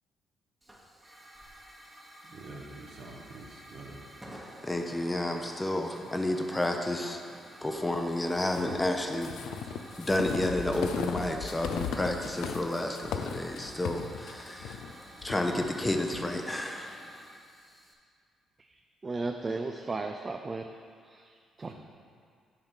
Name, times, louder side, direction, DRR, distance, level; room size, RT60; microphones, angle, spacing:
Hiss / Fire, 0.6-17.9, right 1 dB, 10° right, 1.1 m, -50 dB
voice 1, 2.2-4.0 21.6-21.7, right 2 dB, 60° right, -1 dB, 1.2 m, -46 dB
voice 2, 4.4-7.2 7.6-9.3 10.0-14.8 15.2-17.0, left 1 dB, 15° left, 3 dB, 0.6 m, -31 dB
sound 1, 8.4-16.3, left 7 dB, 85° left, 0.4 m, -38 dB
voice 3, 19.0-20.6 21.0-21.3 21.6-21.7, right 3 dB, 30° right, 4 dB, 0.4 m, -34 dB
8.9 x 3.5 x 5.6 m, 2.1 s
cardioid pair, 90°, 0 cm